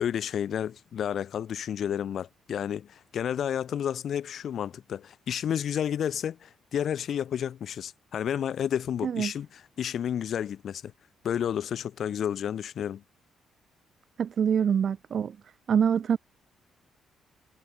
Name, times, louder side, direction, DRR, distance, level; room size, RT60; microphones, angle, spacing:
voice 1, 0.0-10.9 11.2-13.0, left 9 dB, 55° left, 0.8 m, -31 dB
voice 2, 14.2-15.4 15.7-16.2, right 7 dB, 45° right, 0.9 m, -25 dB
cardioid pair, 140°, 0 cm